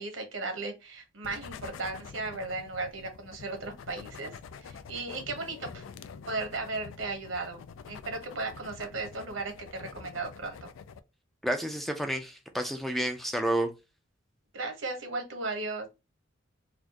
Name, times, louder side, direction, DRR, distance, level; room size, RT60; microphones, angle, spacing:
voice 1, 0.0-5.8 6.3-10.7 14.5-15.9, right 3 dB, 75° right, 1.1 m, -36 dB
sound 1, 1.2-11.0, left 6 dB, 80° left, 0.4 m, -46 dB
voice 2, 11.4-13.7, right 1 dB, ahead, 0.4 m, -30 dB
4.2 x 2.4 x 2.9 m
head